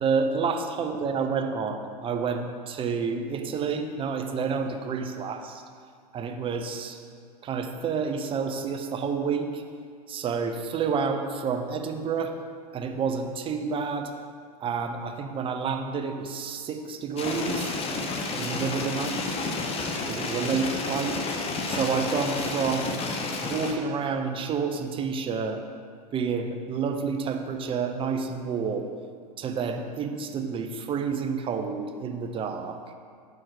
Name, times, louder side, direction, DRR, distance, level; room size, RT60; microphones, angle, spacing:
voice 1, 0.0-5.6 6.1-7.0 7.4-9.6 10.1-12.3 12.7-14.1 14.6-17.8 18.4-19.4 20.1-21.2 21.7-22.9 23.4-25.6 26.1-28.9 29.4-32.8, right 5 dB, 25° right, 6 dB, 0.6 m, -29 dB
sound 1, 17.2-23.7, left 3 dB, 30° left, 0.8 m, -30 dB
5.7 x 4.3 x 4.8 m, 2.1 s
hypercardioid pair, 95°, 20 cm